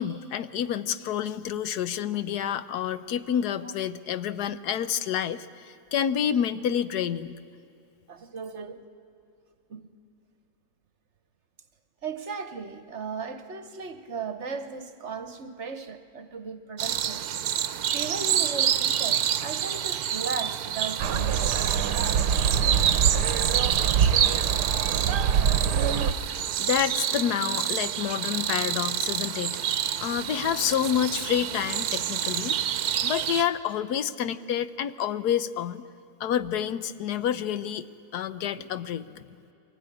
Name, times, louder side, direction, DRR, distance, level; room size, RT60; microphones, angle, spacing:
voice 1, 0.0-7.4 25.6-26.3 26.6-32.8 33.0-35.8 36.2-37.9 38.1-39.3, left 9 dB, 75° left, 1.3 m, -29 dB
voice 2, 8.1-8.8 9.7-9.9 12.0-17.2 17.9-22.1 25.9-26.7, right 5 dB, 50° right, 1.2 m, -37 dB
sound 1, 16.8-33.4, right 10 dB, 70° right, 1.2 m, -28 dB
sound 2, 21.0-26.1, right 7 dB, 85° right, 1.4 m, -25 dB
23.5 x 16.5 x 9.9 m
omnidirectional pair, 1.7 m